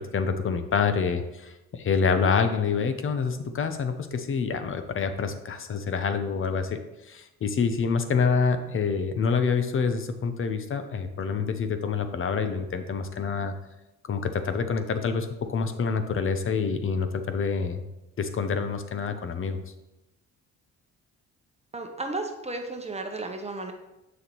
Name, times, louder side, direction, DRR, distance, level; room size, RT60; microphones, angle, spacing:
voice 1, 0.0-6.8 7.1-13.5 14.1-17.8 18.2-19.6, left 5 dB, 45° left, 8 dB, 0.8 m, -27 dB
voice 2, 21.7-23.7, right 2 dB, 20° right, 4 dB, 0.9 m, -33 dB
7.2 x 6.4 x 3.1 m, 0.94 s
cardioid pair, 90°, 30 cm